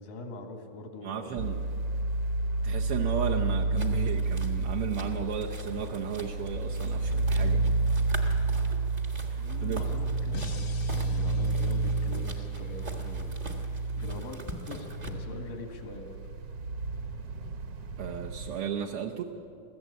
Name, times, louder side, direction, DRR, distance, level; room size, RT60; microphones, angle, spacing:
voice 1, 0.0-1.5 7.3-7.8 8.2-8.4 9.4-13.4 14.0-16.2, left 3 dB, 90° left, 4 dB, 3.5 m, -43 dB
voice 2, 1.0-1.6 2.6-7.6 9.3-9.8 18.0-19.2, right 9 dB, 75° right, 0 dB, 1.3 m, -34 dB
Fan Buzz, 1.4-18.6, right 3 dB, 55° right, 1.9 m, -30 dB
sound 1, 3.8-15.1, right 1 dB, 35° right, 0.8 m, -44 dB
sound 2, 10.3-13.5, left 4 dB, 60° left, 1.2 m, -47 dB
21.5 x 15.0 x 8.2 m, 2.5 s
omnidirectional pair, 3.7 m